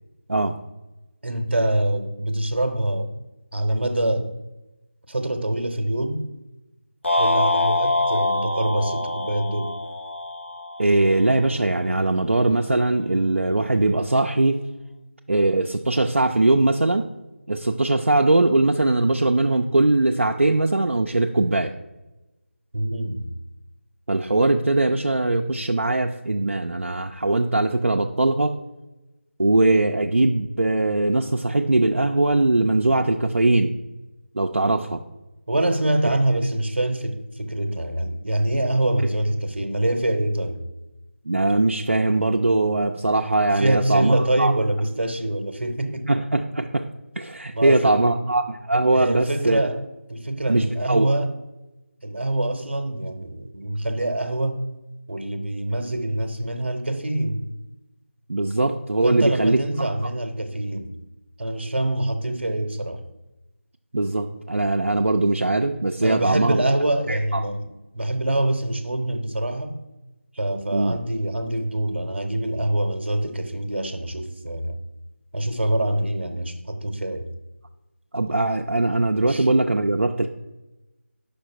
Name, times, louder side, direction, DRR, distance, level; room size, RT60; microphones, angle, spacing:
voice 1, 1.2-3.1 3.5-4.3 5.1-6.2 7.2-9.7 22.7-23.3 35.5-40.6 43.5-46.1 47.5-48.1 48.9-49.8 50.1-51.3 52.0-54.6 55.1-57.5 59.0-60.9 61.4-63.0 66.0-67.7 67.9-69.8 70.4-74.8 75.3-77.3 79.3-79.5, right 1 dB, 55° right, 7 dB, 0.8 m, -25 dB
sound 1, 7.0-11.4, left 2 dB, 65° left, 0.9 m, -24 dB
voice 2, 10.8-14.6 15.3-17.1 17.5-21.7 24.1-28.5 29.4-33.7 34.3-35.0 41.3-44.5 46.1-46.8 47.2-49.6 50.5-51.1 58.3-59.6 63.9-66.6 67.1-67.4 70.7-71.0 78.1-80.3, right 2 dB, 75° right, 3 dB, 0.4 m, -21 dB
5.2 x 5.2 x 4.4 m, 1.0 s
figure-of-eight pair, 165°, 7 cm